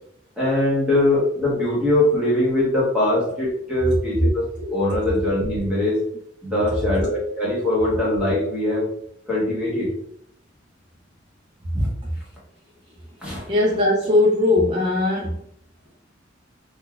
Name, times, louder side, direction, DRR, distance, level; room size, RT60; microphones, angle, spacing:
voice 1, 0.4-6.0 6.4-8.9 9.3-9.9 11.7-11.9 13.2-13.5, left 1 dB, 5° right, -7 dB, 1.0 m, -21 dB
voice 2, 13.5-15.3, left 2 dB, 25° right, -5 dB, 0.5 m, -19 dB
3.9 x 2.3 x 2.3 m, 0.67 s
head